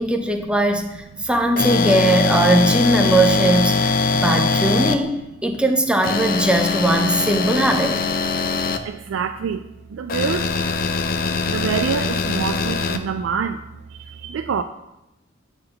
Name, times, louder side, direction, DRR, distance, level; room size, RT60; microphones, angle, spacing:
voice 1, 0.0-8.0, right 1 dB, 5° right, 4 dB, 0.6 m, -19 dB
sound 1, 1.6-4.9 6.0-8.8 10.1-13.0, left 4 dB, 50° left, 0.5 m, -21 dB
voice 2, 8.8-10.5 11.5-13.6 13.9-14.6, right 6 dB, 70° right, 8 dB, 0.3 m, -26 dB
8.9 x 4.0 x 5.3 m, 0.93 s
head